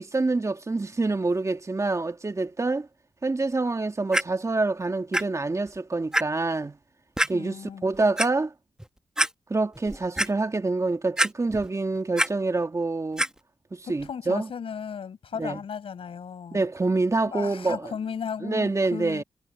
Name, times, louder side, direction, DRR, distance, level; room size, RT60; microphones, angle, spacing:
voice 1, 0.0-2.9 3.2-6.8 7.3-8.5 9.5-13.2 13.7-14.5 15.4-15.6 16.5-17.9 18.4-19.2, right 3 dB, 35° right, 2.1 m, -26 dB
Clock, 4.1-4.2 5.1-5.2 5.7-5.8 6.1-6.2 7.2-7.3 7.9-8.3 8.8-8.9 9.2-9.3 9.8-10.3 11.2-11.7 12.0-12.3 13.2-13.3 14.0-14.1, right 1 dB, 5° right, 1.0 m, -24 dB
voice 2, 7.3-7.8 14.0-16.6 17.2-19.2, left 7 dB, 80° left, 5.2 m, -35 dB
cardioid pair, 60°, 9 cm